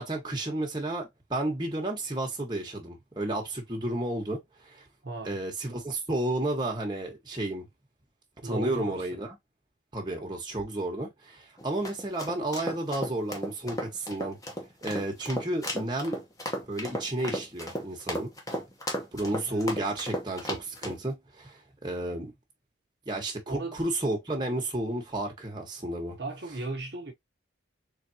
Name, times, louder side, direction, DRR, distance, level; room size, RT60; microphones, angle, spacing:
voice 1, 0.0-4.8 5.2-7.7 8.4-9.3 9.9-14.4 14.8-16.2 16.7-18.3 19.1-22.3 23.1-26.2, right 1 dB, 20° right, 1.3 m, -32 dB
voice 2, 5.0-5.4 8.4-9.0 19.4-19.7 23.5-23.8 26.2-27.1, right 2 dB, 55° right, 1.0 m, -35 dB
sound 1, 11.6-21.0, equal, 20° left, 0.9 m, -35 dB
3.9 x 3.4 x 2.8 m
head